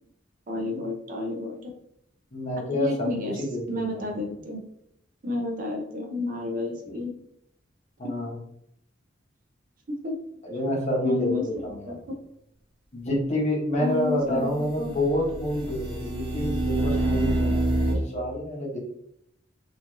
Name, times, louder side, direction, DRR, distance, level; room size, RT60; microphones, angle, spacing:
voice 1, 0.5-1.7 2.7-4.6 5.2-7.1 9.9-10.1 11.0-12.1 13.8-15.0, left 3 dB, 45° right, 1 dB, 0.6 m, -31 dB
voice 2, 2.3-3.1 3.3-4.1 6.8-7.0 8.0-8.4 10.4-12.0 12.9-18.8, left 1 dB, 40° left, -2 dB, 0.9 m, -28 dB
sound 1, 11.5-11.6 15.0-17.9, right 1 dB, 30° right, 1.0 m, -26 dB
3.0 x 2.6 x 2.5 m, 0.73 s
head